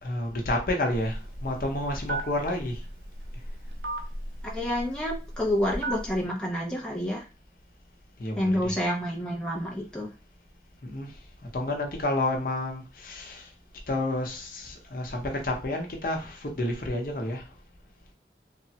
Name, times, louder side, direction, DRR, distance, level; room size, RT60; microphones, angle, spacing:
voice 1, 0.0-2.8 8.2-8.8 10.8-11.1 11.5-13.5 13.9-17.4, left 1 dB, 55° left, 0.7 m, -30 dB
Telephone, 0.9-6.2, right 2 dB, 85° right, 0.7 m, -37 dB
voice 2, 4.4-7.3 8.4-10.1, left 1 dB, 5° left, 0.4 m, -28 dB
3.3 x 2.0 x 2.7 m
head